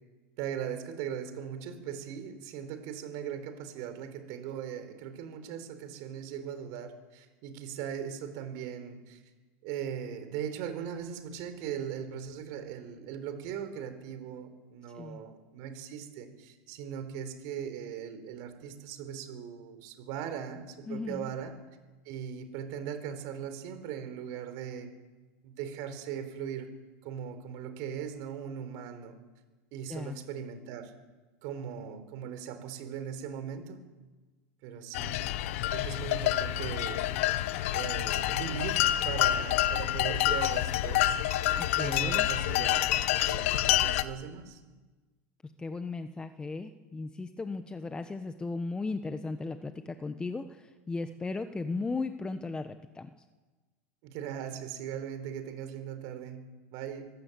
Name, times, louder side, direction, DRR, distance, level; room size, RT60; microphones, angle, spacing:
voice 1, 0.4-9.2 9.6-21.5 22.1-24.9 25.4-26.7 27.0-29.1 29.7-30.9 31.4-33.8 34.6-35.2 35.7-37.0 37.7-41.2 41.8-44.6 54.0-57.1, right 8 dB, 55° right, 9 dB, 4.1 m, -39 dB
voice 2, 20.9-21.3 29.9-30.2 41.6-42.3 45.4-53.1, left 3 dB, 10° left, 9 dB, 1.0 m, -36 dB
sound 1, 34.9-44.0, left 13 dB, 70° left, 1.1 m, -28 dB
25.0 x 16.0 x 8.3 m, 1.3 s
supercardioid pair, 135°, 7 cm